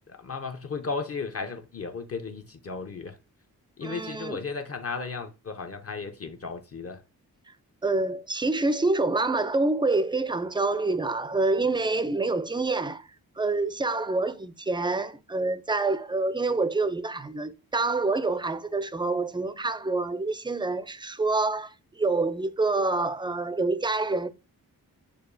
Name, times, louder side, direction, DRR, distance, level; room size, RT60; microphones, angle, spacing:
voice 1, 0.1-3.2 3.8-7.0, left 4 dB, 40° left, 0.6 m, -35 dB
voice 2, 3.8-4.4 7.8-13.1 13.4-24.3, right 3 dB, 15° right, 0.3 m, -27 dB
6.5 x 2.4 x 2.6 m
cardioid pair, 60°, 39 cm